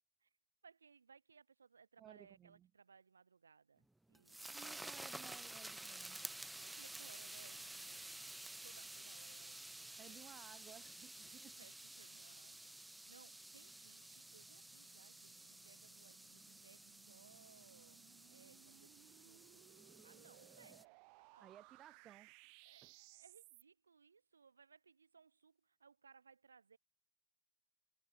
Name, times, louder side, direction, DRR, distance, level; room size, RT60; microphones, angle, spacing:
voice 1, 0.6-4.7 6.5-10.4 11.2-15.4 15.6-19.6 20.0-21.6 22.6-26.8, right 5 dB, 75° right, 6.9 m, -65 dB
voice 2, 2.0-2.7 4.5-6.2 10.0-11.6 21.4-22.3 22.8-22.9, right 10 dB, 30° right, 2.0 m, -59 dB
sound 1, 3.8-20.8, right 2 dB, 5° right, 0.5 m, -52 dB
sound 2, 13.6-23.6, right 36 dB, 45° right, 6.0 m, -65 dB
figure-of-eight pair, 90°, 0 cm